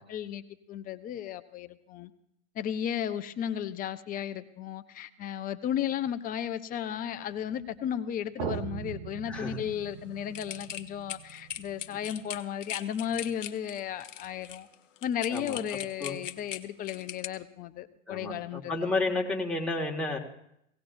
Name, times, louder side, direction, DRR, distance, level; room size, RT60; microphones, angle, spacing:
voice 1, 0.0-2.1 2.5-14.7 15.0-18.7, left 9 dB, 25° left, 11 dB, 0.6 m, -34 dB
sound 1, 7.6-7.7 8.4-12.4, right 12 dB, 50° right, 0.7 m, -41 dB
voice 2, 9.3-9.6 15.3-15.6 16.0-16.2 18.1-20.2, left 2 dB, 5° left, -1 dB, 1.7 m, -31 dB
sound 2, 10.3-17.3, left 11 dB, 75° left, 1.0 m, -40 dB
17.5 x 17.0 x 2.6 m, 0.76 s
hypercardioid pair, 110°, 38 cm